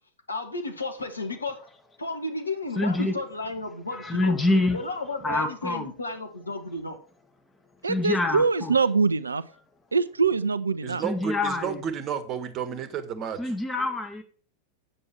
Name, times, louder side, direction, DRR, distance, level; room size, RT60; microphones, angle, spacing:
voice 1, 0.3-1.6 2.0-4.4 4.7-7.0, left 2 dB, 80° left, 6 dB, 1.6 m, -33 dB
voice 2, 2.8-3.1 3.9-4.8 5.2-5.9 7.8-8.8 11.0-11.8 13.4-14.2, left 2 dB, 15° left, 4 dB, 1.9 m, -26 dB
voice 3, 7.8-9.4 9.9-11.0, right 4 dB, 75° right, 15 dB, 0.5 m, -23 dB
voice 4, 10.8-13.5, right 7 dB, 30° right, 12 dB, 1.4 m, -32 dB
8.8 x 7.8 x 4.5 m, 0.42 s
figure-of-eight pair, 90°, 0 cm